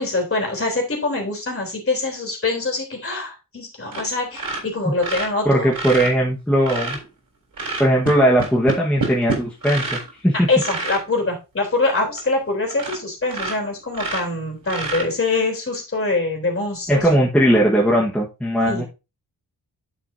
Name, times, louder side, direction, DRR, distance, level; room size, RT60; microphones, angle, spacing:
voice 1, 0.0-5.7 10.5-17.2 18.7-18.8, left 3 dB, 35° left, 1 dB, 3.4 m, -24 dB
sound 1, 3.9-4.1 4.3-7.0 7.5-10.1 10.6-11.0 11.7-11.8 12.2-12.3 12.7-13.0 13.3-15.4 16.9-17.1, right 3 dB, 60° right, 3.7 m, -28 dB
voice 2, 5.4-7.0 7.8-10.5 16.9-18.8, equal, 5° left, -3 dB, 1.4 m, -18 dB
9.5 x 6.7 x 2.7 m, 0.28 s
wide cardioid pair, 135°, 40 cm